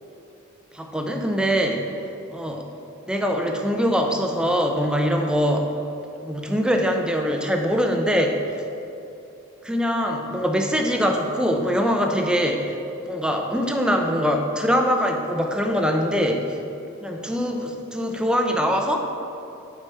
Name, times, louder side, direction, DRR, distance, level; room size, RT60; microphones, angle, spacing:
voice 1, 0.7-1.9 2.3-2.7 3.1-5.7 6.2-8.4 9.6-12.8 13.0-16.6 17.0-19.0, equal, 5° right, 3 dB, 0.6 m, -23 dB
8.8 x 4.9 x 5.6 m, 2.9 s
head